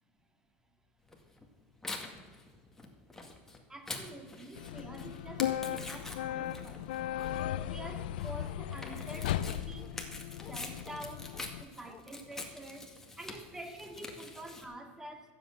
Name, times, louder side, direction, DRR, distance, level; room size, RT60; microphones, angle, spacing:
Tearing, 1.1-14.6, left 2 dB, 10° left, 1.9 m, -46 dB
voice 1, 3.7-6.9 7.6-9.9 10.5-15.3, right 1 dB, 10° right, 5 dB, 2.0 m, -47 dB
sound 1, 4.6-11.6, left 12 dB, 85° left, 0.5 m, -37 dB
Bark, 6.3-6.6 7.2-7.7 8.4-8.6 9.1-9.3 9.8-9.9 10.4-10.6 10.9-11.5 11.9-12.0, left 7 dB, 30° left, 0.7 m, -56 dB
14.5 x 7.8 x 7.8 m, 1.5 s
supercardioid pair, 115°, 5 cm